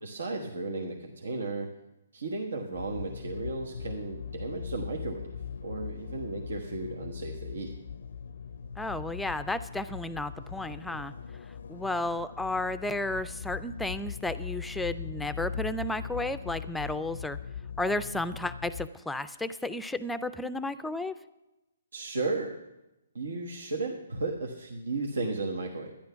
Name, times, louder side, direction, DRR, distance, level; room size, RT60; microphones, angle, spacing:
voice 1, 0.0-1.7 2.1-5.4 5.6-7.8 21.9-22.6 23.1-25.9, right 3 dB, 85° right, 2 dB, 1.3 m, -34 dB
sound 1, 2.7-18.9, left 7 dB, 70° left, 0.4 m, -40 dB
voice 2, 8.8-11.1 11.7-17.4 17.8-21.2, left 2 dB, 5° left, 12 dB, 0.4 m, -33 dB
12.0 x 10.5 x 5.7 m, 0.96 s
hypercardioid pair, 160°, 0 cm